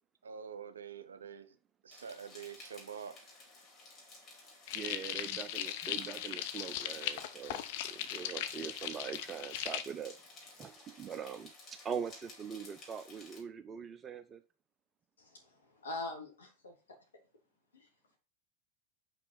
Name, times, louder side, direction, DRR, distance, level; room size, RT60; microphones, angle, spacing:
voice 1, 0.2-1.5 1.8-3.2, right 7 dB, 70° right, 0.9 m, -46 dB
sound 1, 1.9-13.4, left 2 dB, 25° left, 4.4 m, -55 dB
sound 2, 4.7-9.8, left 11 dB, 50° left, 0.7 m, -39 dB
voice 2, 4.7-10.2 10.6-11.5 11.8-14.4, right 7 dB, 25° right, 0.5 m, -42 dB
voice 3, 15.2-16.7 17.7-17.9, left 2 dB, 70° left, 3.2 m, -43 dB
6.0 x 5.7 x 5.8 m
figure-of-eight pair, 90°, 0 cm